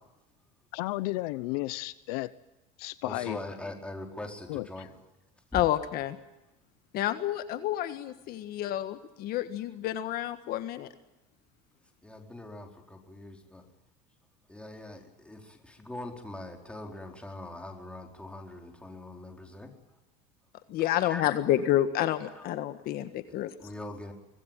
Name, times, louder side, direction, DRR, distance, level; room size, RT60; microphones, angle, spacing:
voice 1, 0.7-2.3 2.8-3.4 4.5-4.9, left 19 dB, 75° left, 16 dB, 1.0 m, -33 dB
voice 2, 3.0-4.9 5.5-5.6 12.0-13.6 14.5-19.7 21.0-21.2 22.3-22.5 23.3-24.1, left 1 dB, 5° left, 3 dB, 4.4 m, -42 dB
voice 3, 5.5-6.2 6.9-10.9 20.7-23.5, left 12 dB, 50° left, 10 dB, 1.6 m, -29 dB
25.0 x 19.5 x 9.1 m, 0.99 s
supercardioid pair, 130°, 20 cm